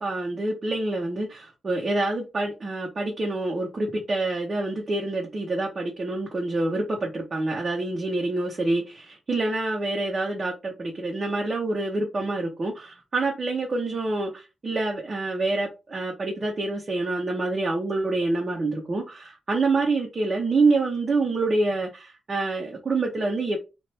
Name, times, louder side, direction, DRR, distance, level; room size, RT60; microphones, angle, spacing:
voice 1, 0.0-23.6, right 2 dB, 40° right, 0.8 m, -27 dB
2.8 x 2.5 x 3.2 m
cardioid pair, 95°, 0 cm